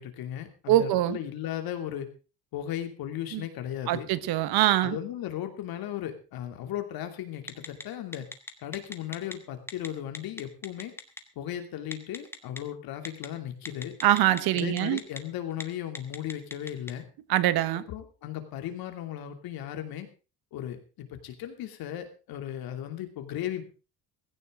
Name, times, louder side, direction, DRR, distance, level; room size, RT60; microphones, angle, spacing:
voice 1, 0.0-2.1 2.5-4.1 4.8-8.3 8.6-10.9 11.4-13.9 14.5-17.0 17.7-20.1 20.5-23.6, left 11 dB, 65° left, 2.9 m, -36 dB
voice 2, 0.7-1.2 3.3-3.4 3.9-5.0 14.0-15.0 17.3-17.8, right 14 dB, 70° right, 1.3 m, -23 dB
Telephone, 7.5-7.8 8.1-9.3 9.7-9.9 10.1-11.2 11.9-12.6 13.1-13.3 13.7-15.2 15.5-15.6 16.0-16.9, left 2 dB, 5° left, 1.2 m, -37 dB
16.5 x 15.5 x 3.8 m
cardioid pair, 165°, 38 cm